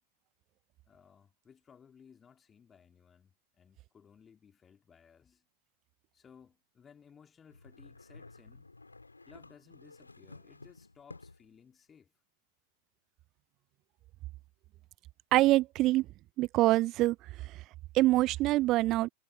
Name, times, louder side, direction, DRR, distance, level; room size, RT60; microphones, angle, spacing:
voice 1, 0.8-5.4 6.1-8.7 9.3-12.1, left 7 dB, 20° left, 3.6 m, -59 dB
sound 1, 7.5-11.6, left 3 dB, 80° left, 3.4 m, -53 dB
voice 2, 15.3-16.1 16.4-17.2 17.4-17.6 17.9-19.1, right 17 dB, 35° right, 0.5 m, -25 dB
figure-of-eight pair, 90°, 0 cm